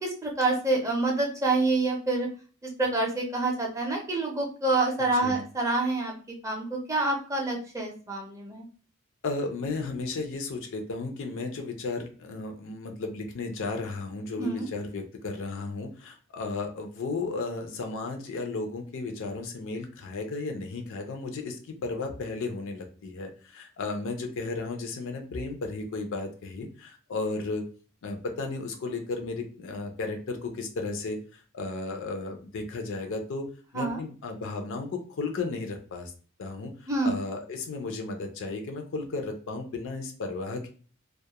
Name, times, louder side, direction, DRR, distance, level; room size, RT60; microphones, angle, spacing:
voice 1, 0.0-2.3 2.6-6.1 6.4-8.6 14.4-14.7 33.7-34.0 36.9-37.1, right 2 dB, 15° right, 0 dB, 0.5 m, -27 dB
voice 2, 5.0-5.4 9.2-27.7 28.0-33.5 33.7-36.1 36.4-40.7, left 3 dB, 60° left, 4 dB, 0.4 m, -34 dB
2.3 x 2.0 x 2.8 m, 0.39 s
head